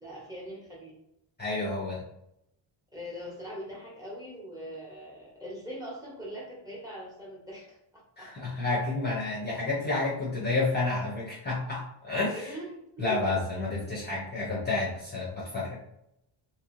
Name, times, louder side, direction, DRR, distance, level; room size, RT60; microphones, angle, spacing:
voice 1, 0.0-1.0 2.9-7.8 8.2-8.3 12.3-12.7 13.0-13.2, equal, 5° right, -4 dB, 1.1 m, -41 dB
voice 2, 1.4-2.0 8.2-12.5 13.0-15.8, left 3 dB, 20° left, -6 dB, 0.8 m, -30 dB
3.0 x 2.8 x 3.1 m, 0.79 s
wide cardioid pair, 155°, 49 cm